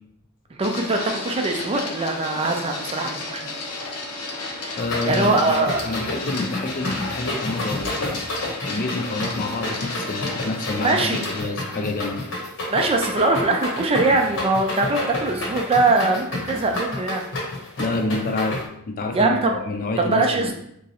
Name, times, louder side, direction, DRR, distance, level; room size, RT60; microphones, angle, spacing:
Printer, 0.6-11.4, left 2 dB, 90° left, 0.7 m, -33 dB
voice 1, 0.6-3.5 5.0-6.2 10.8-11.2 12.7-17.2 19.1-19.6 20.0-20.5, right 3 dB, 25° right, 2 dB, 0.4 m, -22 dB
sound 1, 4.8-18.6, left 2 dB, 60° left, 1.0 m, -30 dB
voice 2, 4.8-8.3 8.6-12.2 17.8-20.5, left 2 dB, 40° left, 3 dB, 0.4 m, -28 dB
3.5 x 3.0 x 2.9 m, 0.74 s
head